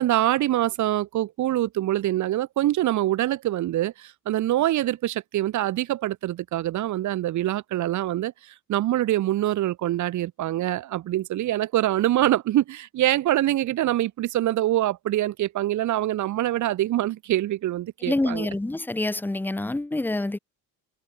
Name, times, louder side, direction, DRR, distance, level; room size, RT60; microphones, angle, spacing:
voice 1, 0.0-18.5, right 14 dB, 40° right, 0.7 m, -25 dB
voice 2, 18.0-20.4, left 2 dB, 5° left, 0.7 m, -27 dB
hypercardioid pair, 55°, 46 cm